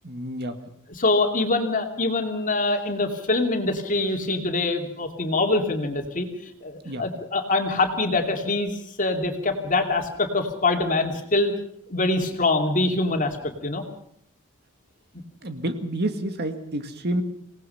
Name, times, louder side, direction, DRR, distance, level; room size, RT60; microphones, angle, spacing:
voice 1, 0.0-0.6 6.9-7.0 15.4-17.2, right 1 dB, 50° right, 7 dB, 1.9 m, -29 dB
voice 2, 0.9-8.7 9.0-11.5 11.9-13.4 13.6-13.9, left 2 dB, 40° left, 3 dB, 2.7 m, -24 dB
26.5 x 18.5 x 5.7 m, 0.69 s
head